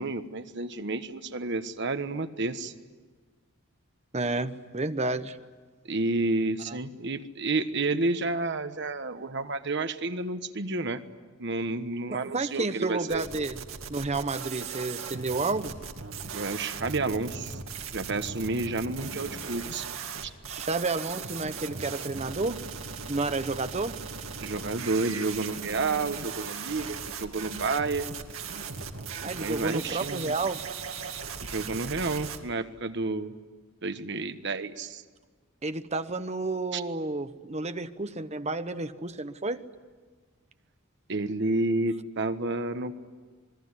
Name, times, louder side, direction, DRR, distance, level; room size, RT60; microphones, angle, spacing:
voice 1, 0.0-2.7 5.9-11.0 11.4-13.2 16.3-17.6 17.9-19.9 20.2-20.3 24.4-28.1 29.4-30.4 31.4-33.3 33.8-35.0 36.7-36.8 41.1-42.9, right 3 dB, 60° right, 9 dB, 1.3 m, -30 dB
voice 2, 4.1-5.4 6.7-6.8 12.1-13.6 13.9-15.7 20.5-22.6 23.1-24.0 29.2-30.6 35.6-39.6, right 3 dB, 30° right, 10 dB, 1.0 m, -31 dB
sound 1, 13.1-32.4, right 5 dB, 75° right, 2.2 m, -38 dB
27.0 x 21.0 x 9.8 m, 1.5 s
head